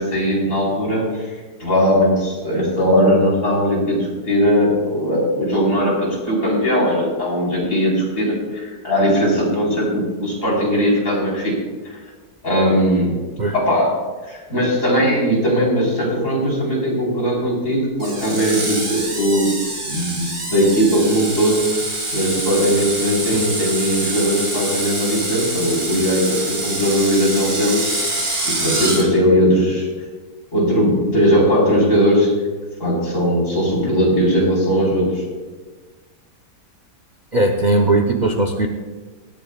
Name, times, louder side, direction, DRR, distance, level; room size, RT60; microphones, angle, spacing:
voice 1, 0.0-11.5 11.8-12.0 12.4-13.1 13.5-13.9 14.2-19.5 19.9-21.8 22.1-27.9 28.4-29.9 30.5-32.3 32.8-35.2, equal, 45° left, -4 dB, 4.4 m, -19 dB
Screech, 18.0-29.0, right 2 dB, 35° right, 2.6 m, -25 dB
voice 2, 37.3-38.7, right 2 dB, 70° right, 3 dB, 0.4 m, -18 dB
17.5 x 14.0 x 2.3 m, 1.4 s
omnidirectional pair, 1.8 m